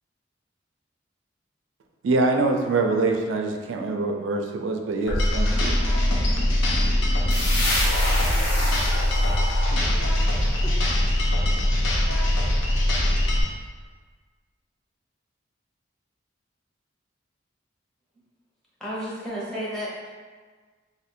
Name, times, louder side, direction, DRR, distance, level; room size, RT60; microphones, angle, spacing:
voice 1, 2.0-5.8, right 3 dB, 75° right, 3 dB, 0.4 m, -24 dB
sound 1, 5.1-13.4, left 1 dB, 85° left, 0.6 m, -22 dB
sound 2, 7.3-10.9, left 1 dB, 55° left, 0.8 m, -30 dB
voice 2, 7.8-10.8, left 1 dB, 35° left, -3 dB, 0.5 m, -40 dB
voice 3, 18.8-20.1, equal, 5° left, -8 dB, 0.8 m, -32 dB
2.6 x 2.5 x 4.2 m, 1.5 s
head